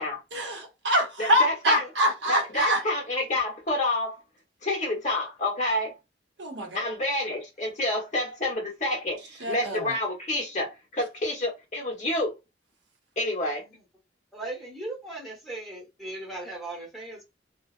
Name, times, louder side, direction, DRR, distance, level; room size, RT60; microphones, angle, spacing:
voice 1, 0.3-2.8 6.4-6.7 9.4-9.9, equal, 70° right, 0.8 m, -25 dB
voice 2, 1.2-1.8 2.3-4.2 4.6-6.0 6.7-12.4 13.2-13.6, left 1 dB, 40° left, 1.0 m, -28 dB
voice 3, 14.3-17.2, right 2 dB, ahead, 1.1 m, -38 dB
2.6 x 2.0 x 2.4 m
head